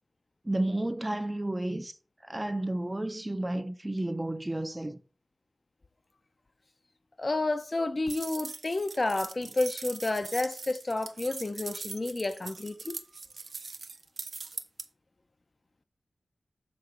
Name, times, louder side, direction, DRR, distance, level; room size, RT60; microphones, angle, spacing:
voice 1, 0.4-1.9 2.2-5.0, right 1 dB, 15° right, 0.5 m, -31 dB
voice 2, 7.2-13.0, left 2 dB, 35° left, 0.5 m, -30 dB
sound 1, 8.1-14.8, right 4 dB, 65° right, 0.6 m, -41 dB
6.8 x 3.9 x 4.9 m
wide cardioid pair, 110°, 0 cm